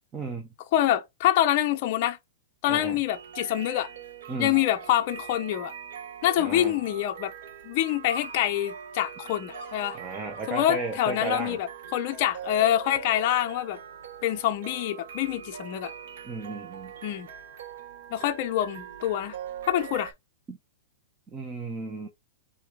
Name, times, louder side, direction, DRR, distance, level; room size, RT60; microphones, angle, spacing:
voice 1, 0.1-0.5 2.7-3.0 4.3-4.6 6.4-6.8 9.9-11.6 16.2-16.9 20.5-20.6 21.3-22.1, right 3 dB, 15° right, 0.5 m, -34 dB
voice 2, 0.7-2.2 2.6-3.9 4.4-5.7 6.2-7.3 7.6-10.0 10.5-13.8 14.2-15.9 17.0-17.3 18.1-19.4 19.7-20.1, left 12 dB, 35° left, 0.5 m, -26 dB
sound 1, 3.1-20.1, right 8 dB, 55° right, 0.7 m, -42 dB
sound 2, 8.0-12.2, right 1 dB, 30° right, 2.2 m, -45 dB
3.7 x 3.0 x 3.6 m
supercardioid pair, 170°, 0 cm